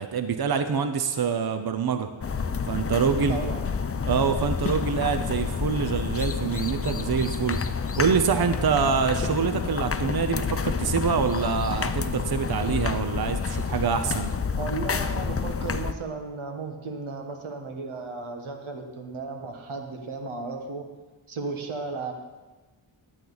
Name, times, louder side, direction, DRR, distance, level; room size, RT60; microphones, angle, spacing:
voice 1, 0.0-2.1 2.7-3.4 4.0-7.6 8.0-14.3, right 6 dB, 50° right, 8 dB, 0.8 m, -25 dB
sound 1, 2.2-15.9, left 5 dB, 30° left, 0.5 m, -29 dB
voice 2, 3.3-3.6 14.6-20.9 21.3-22.1, right 4 dB, 90° right, 4 dB, 1.3 m, -34 dB
12.0 x 8.6 x 4.0 m, 1.2 s
cardioid pair, 50°, 48 cm